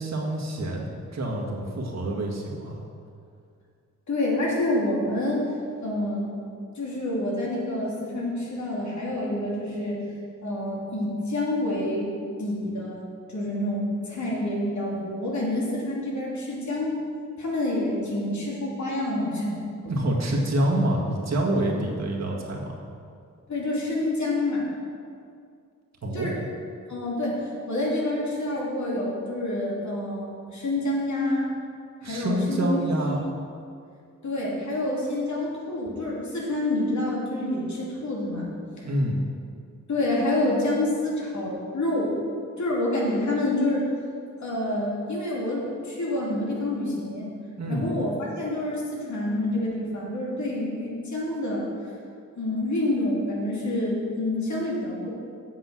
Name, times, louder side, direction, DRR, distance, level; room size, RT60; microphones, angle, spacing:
voice 1, 0.0-2.8 19.9-22.7 26.0-26.3 32.0-33.2 38.8-39.2 47.6-47.9, right 1 dB, 60° right, -2 dB, 1.8 m, -27 dB
voice 2, 4.1-5.5 5.8-6.4 6.7-10.0 10.4-12.1 12.4-13.0 13.3-17.0 17.4-19.7 23.5-24.7 26.1-26.3 26.9-31.5 32.0-33.2 34.2-38.5 38.8-38.9 39.9-42.1 42.6-43.9 44.4-47.3 47.7-51.7 52.4-55.1, left 1 dB, 65° left, -4 dB, 2.6 m, -27 dB
7.9 x 7.8 x 6.1 m, 2.3 s
wide cardioid pair, 90°, 31 cm